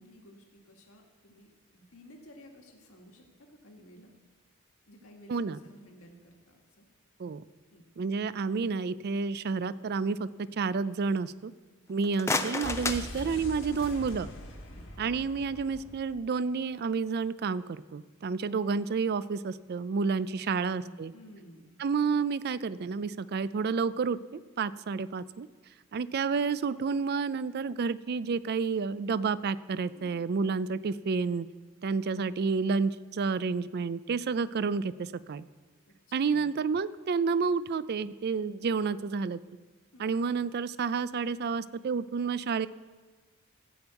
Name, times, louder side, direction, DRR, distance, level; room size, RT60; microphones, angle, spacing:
voice 1, 0.0-4.1 4.9-6.9 7.7-7.8 11.9-12.0 14.7-14.9 20.6-21.7 30.0-30.3 36.1-36.6 39.9-40.1, equal, 75° left, 1 dB, 1.7 m, -54 dB
voice 2, 8.0-11.5 11.9-14.3 15.0-21.1 21.8-25.5 25.9-31.5 31.8-35.4 36.1-39.4 40.0-42.7, right 5 dB, 45° right, 17 dB, 0.4 m, -30 dB
sound 1, 11.9-14.0, left 3 dB, 15° left, 0.5 m, -33 dB
sound 2, 12.6-16.4 16.7-16.8, left 1 dB, 60° left, 1.5 m, -43 dB
15.0 x 5.3 x 8.0 m, 1.4 s
head